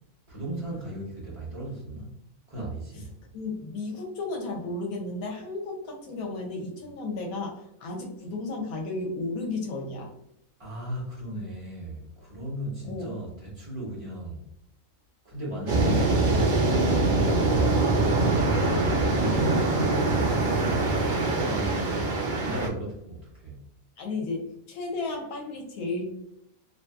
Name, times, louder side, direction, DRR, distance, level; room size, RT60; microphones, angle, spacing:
voice 1, 0.3-2.1 2.5-3.1 10.6-14.4 15.2-16.2 18.9-20.4 21.3-21.9 22.4-23.6, right 1 dB, 30° right, -5 dB, 0.7 m, -36 dB
voice 2, 3.3-10.1 12.9-13.1 24.0-26.2, left 2 dB, 80° left, 1 dB, 1.1 m, -33 dB
sound 1, 15.7-22.7, right 2 dB, 75° right, 0.4 m, -23 dB
2.6 x 2.5 x 2.2 m, 0.74 s
omnidirectional pair, 1.5 m